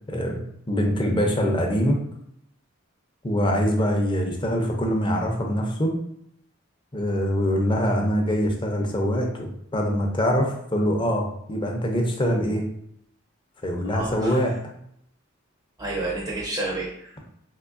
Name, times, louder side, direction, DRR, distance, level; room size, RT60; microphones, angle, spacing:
voice 1, 0.1-2.0 3.2-5.9 6.9-12.6 13.6-14.6, equal, 25° left, 1 dB, 0.5 m, -24 dB
voice 2, 13.8-14.4 15.8-17.2, right 2 dB, 20° right, -3 dB, 0.5 m, -30 dB
3.6 x 2.6 x 2.5 m, 0.72 s
head